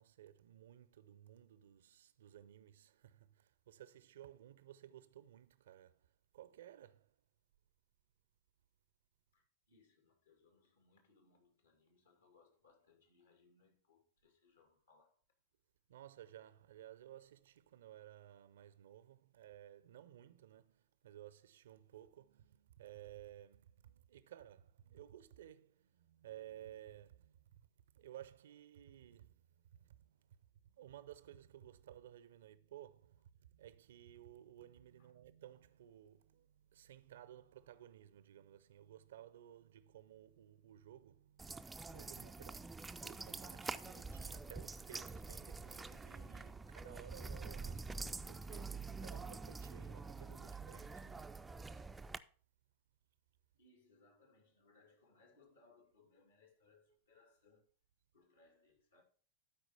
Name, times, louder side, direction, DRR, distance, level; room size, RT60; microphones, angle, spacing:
voice 1, 0.0-6.1 6.3-7.1 15.9-27.6 27.9-30.4 30.6-51.3 51.7-51.9, right 12 dB, 60° right, 0.6 m, -57 dB
voice 2, 9.3-15.2 35.0-35.1 50.2-50.3 53.6-57.6 58.1-59.0, left 3 dB, 70° left, 2.4 m, -70 dB
sound 1, 41.4-52.2, right 4 dB, 10° right, 0.4 m, -47 dB
12.0 x 4.8 x 4.4 m
figure-of-eight pair, 90°, 0 cm